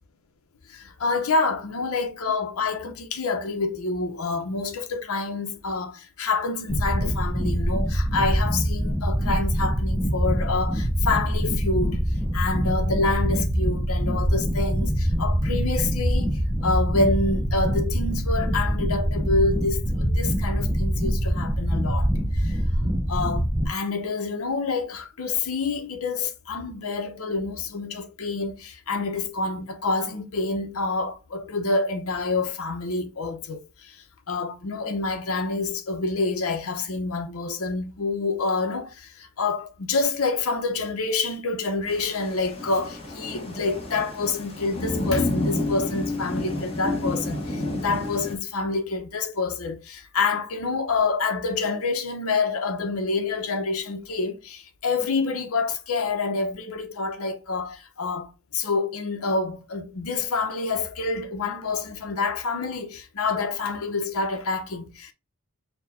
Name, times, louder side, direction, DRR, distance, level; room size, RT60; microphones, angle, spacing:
voice 1, 0.7-12.0 12.3-22.6 23.1-65.1, left 3 dB, 80° left, 0.7 m, -27 dB
sound 1, 6.7-23.7, equal, 10° right, 0.5 m, -24 dB
Thunder / Rain, 41.9-48.4, left 2 dB, 25° left, 1.1 m, -30 dB
4.4 x 2.2 x 4.0 m
head